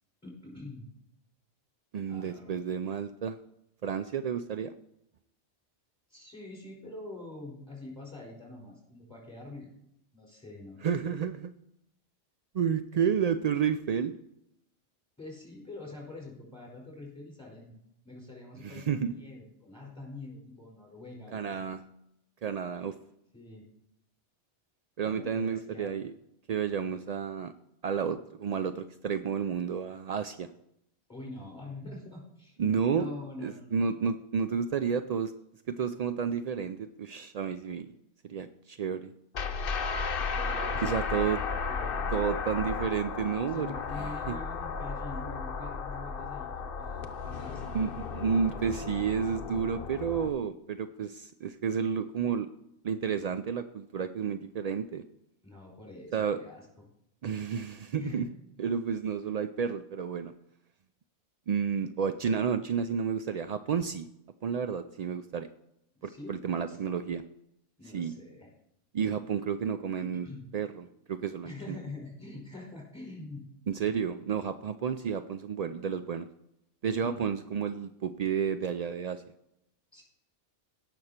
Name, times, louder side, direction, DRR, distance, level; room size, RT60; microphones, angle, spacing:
voice 1, 0.2-0.9 2.0-2.6 6.1-9.7 10.1-10.8 15.2-17.8 18.0-21.7 23.3-23.6 25.0-25.9 31.1-32.6 32.9-34.1 40.3-42.3 43.4-47.7 48.2-48.9 55.4-56.9 58.0-58.3 66.0-66.3 66.7-66.8 67.8-68.5 70.0-70.4 71.4-73.5 77.0-77.3 79.9-80.0, left 2 dB, 5° left, -2 dB, 4.9 m, -45 dB
voice 2, 1.9-3.4 3.8-4.7 10.8-11.5 12.5-14.1 18.6-19.1 21.3-21.8 22.4-23.0 25.0-26.1 26.5-27.5 27.8-30.5 32.6-33.1 33.4-35.3 35.7-37.9 38.2-39.1 40.8-41.4 42.1-44.4 47.7-52.5 52.8-55.0 56.1-56.4 57.2-58.2 58.6-60.3 61.5-64.0 64.4-65.5 66.0-67.2 67.9-68.1 68.9-70.3 70.5-71.8 73.7-76.3 76.8-79.2, right 7 dB, 65° right, 10 dB, 0.4 m, -31 dB
sound 1, 39.3-50.3, left 5 dB, 55° left, 0.9 m, -34 dB
17.5 x 6.1 x 4.3 m, 0.79 s
omnidirectional pair, 1.2 m